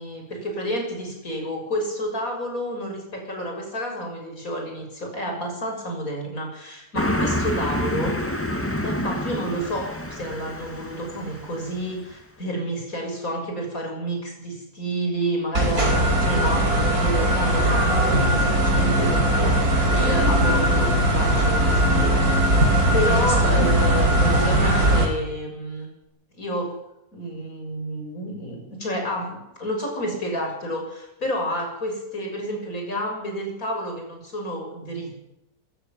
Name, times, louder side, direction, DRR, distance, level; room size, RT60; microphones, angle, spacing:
voice 1, 0.0-8.2 8.8-22.5 22.9-25.9 26.4-26.7 27.1-35.1, equal, 60° left, 2 dB, 7.1 m, -30 dB
Car passing by, 7.0-11.9, left 1 dB, 10° left, 2.3 m, -28 dB
sound 1, 15.5-25.1, right 1 dB, 70° right, 4.9 m, -19 dB
24.0 x 15.0 x 9.3 m, 0.89 s
omnidirectional pair, 1.6 m